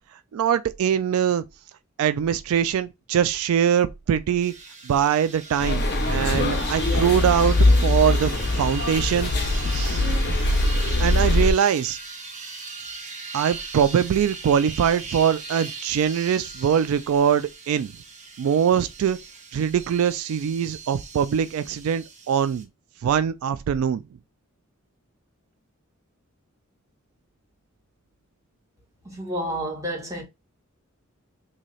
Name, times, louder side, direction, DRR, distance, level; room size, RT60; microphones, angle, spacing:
voice 1, 0.3-1.4 2.0-4.5 4.8-9.3 9.7-10.0 11.0-12.0 13.3-17.9 18.4-19.2 19.5-22.7 23.0-24.0, right 8 dB, 80° right, 0.3 m, -22 dB
sound 1, 4.4-22.6, right 4 dB, 35° right, 1.0 m, -39 dB
sound 2, 5.6-11.5, left 2 dB, 50° left, 0.8 m, -22 dB
voice 2, 29.0-30.2, right 1 dB, 15° right, 1.4 m, -30 dB
3.1 x 2.7 x 3.9 m
head